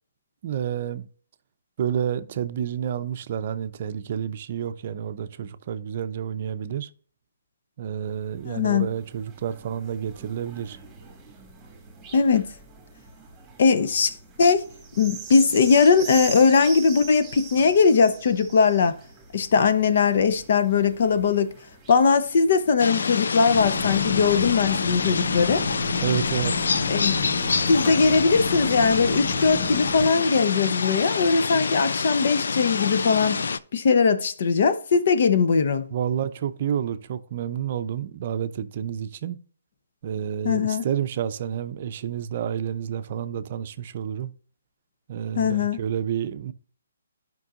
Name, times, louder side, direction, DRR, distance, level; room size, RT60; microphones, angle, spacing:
voice 1, 0.4-1.1 1.8-6.9 7.8-10.8 26.0-26.7 35.9-39.4 40.0-44.3 45.1-46.5, right 9 dB, 45° right, 0.5 m, -29 dB
sound 1, 8.1-23.9 24.5-24.6, right 5 dB, 10° right, 1.9 m, -42 dB
voice 2, 8.4-8.9 12.1-12.5 13.6-14.6 15.0-19.0 19.3-21.5 21.9-25.7 26.9-27.1 27.7-33.4 33.7-35.9 40.4-40.9 45.4-45.8, left 5 dB, 55° left, 0.8 m, -20 dB
sound 2, 22.8-33.6, left 5 dB, 75° left, 0.4 m, -27 dB
sound 3, 23.5-30.1, left 2 dB, 30° left, 1.6 m, -33 dB
11.0 x 5.3 x 2.5 m
hypercardioid pair, 150°, 0 cm